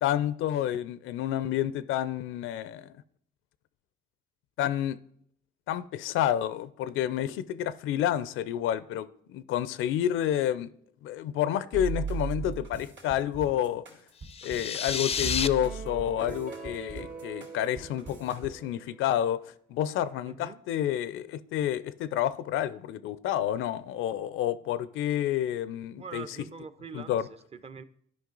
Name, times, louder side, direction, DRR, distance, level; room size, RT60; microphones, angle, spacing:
voice 1, 0.0-2.9 4.6-5.0 5.7-10.7 11.0-13.8 14.4-19.4 19.7-26.4 26.9-27.3, left 11 dB, 85° left, 0.5 m, -29 dB
sound 1, 11.7-18.5, right 5 dB, 65° right, 2.5 m, -38 dB
sound 2, 14.2-15.5, left 6 dB, 30° left, 0.4 m, -30 dB
sound 3, 15.6-19.1, right 5 dB, 45° right, 1.0 m, -44 dB
voice 2, 20.2-20.6 26.0-27.8, right 5 dB, 30° right, 0.6 m, -44 dB
11.5 x 5.1 x 3.8 m
cardioid pair, 90°, 20 cm